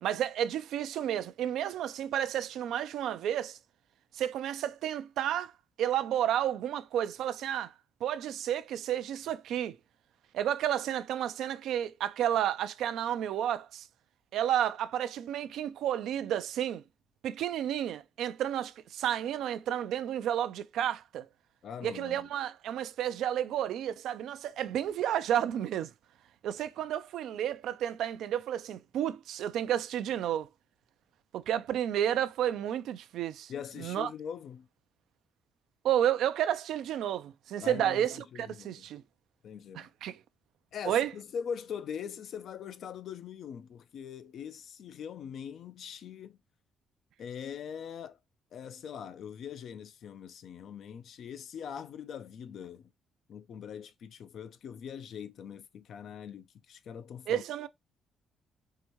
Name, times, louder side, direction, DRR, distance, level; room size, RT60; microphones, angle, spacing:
voice 1, 0.0-3.6 4.1-5.5 5.8-7.7 8.0-9.8 10.3-13.9 14.3-16.8 17.2-21.3 21.8-25.9 26.4-30.5 31.3-33.5 33.8-34.1 35.8-39.0 39.7-40.2 40.9-41.1 57.3-57.7, right 10 dB, 80° right, 0.4 m, -31 dB
voice 2, 21.6-22.3 33.5-34.7 37.6-38.9 39.4-39.9 40.7-46.4 47.2-48.2 48.5-52.9 53.3-57.4, left 7 dB, 65° left, 0.5 m, -42 dB
4.8 x 2.7 x 2.9 m
cardioid pair, 90°, 0 cm